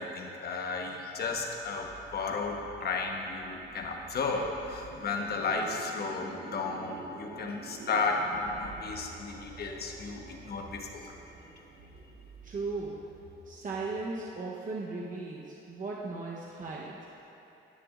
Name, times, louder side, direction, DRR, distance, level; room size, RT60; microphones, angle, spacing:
voice 1, 0.0-11.1, left 4 dB, 55° left, 1 dB, 1.2 m, -33 dB
sound 1, 1.2-14.4, right 3 dB, 70° right, 0.8 m, -49 dB
voice 2, 12.4-13.1 13.5-17.0, right 3 dB, 40° right, -4 dB, 0.9 m, -37 dB
16.5 x 6.8 x 2.5 m, 2.9 s
cardioid pair, 90°, 20 cm